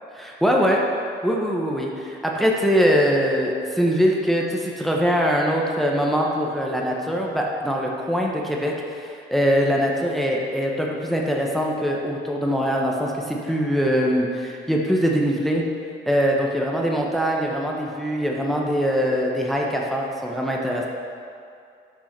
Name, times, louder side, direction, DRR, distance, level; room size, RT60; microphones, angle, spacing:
voice 1, 0.2-0.8 1.2-15.6 16.1-20.9, equal, ahead, -1 dB, 1.0 m, -22 dB
7.3 x 5.4 x 6.0 m, 2.5 s
cardioid pair, 90°, 20 cm